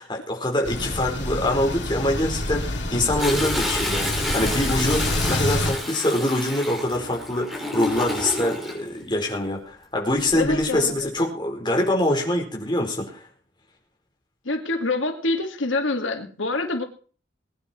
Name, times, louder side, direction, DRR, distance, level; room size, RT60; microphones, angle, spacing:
voice 1, 0.0-13.3, left 1 dB, 25° left, 1 dB, 4.3 m, -24 dB
sound 1, 0.6-5.7, left 1 dB, 70° left, 5.4 m, -27 dB
Toilet flush, 3.2-8.7 10.2-10.7 11.2-11.3, left 1 dB, ahead, 5.4 m, -29 dB
voice 2, 10.3-11.1 14.4-16.8, left 2 dB, 90° left, 5 dB, 2.3 m, -26 dB
21.5 x 9.9 x 4.5 m, 0.42 s
head